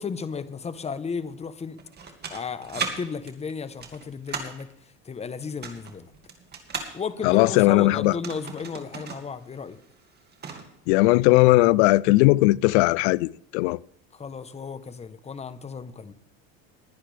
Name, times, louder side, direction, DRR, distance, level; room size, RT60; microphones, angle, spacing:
voice 1, 0.0-1.8 2.3-4.7 5.0-6.1 6.9-9.8 14.1-16.1, left 5 dB, 20° left, 1.0 m, -34 dB
sound 1, 1.8-2.9 3.3-4.6 5.4-6.9 8.0-9.3 9.5-9.6 10.0-10.7, right 5 dB, 30° right, 2.3 m, -35 dB
voice 2, 7.2-8.1 10.9-13.8, left 20 dB, 85° left, 0.5 m, -18 dB
20.0 x 10.0 x 3.4 m
supercardioid pair, 120°, 32 cm